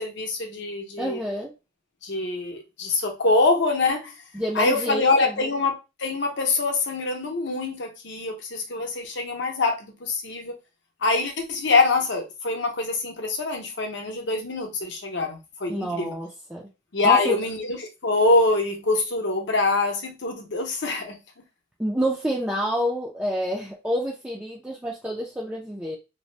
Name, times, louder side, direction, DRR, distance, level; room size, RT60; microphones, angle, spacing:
voice 1, 0.0-1.2 2.0-4.1 4.5-5.7 6.0-10.6 11.0-16.2 16.9-17.8 18.0-21.2, left 3 dB, 60° left, 0.7 m, -24 dB
voice 2, 1.0-1.5 4.3-5.3 15.7-16.7 17.0-17.4 21.8-26.0, equal, 5° right, 0.3 m, -28 dB
2.7 x 2.0 x 3.1 m
head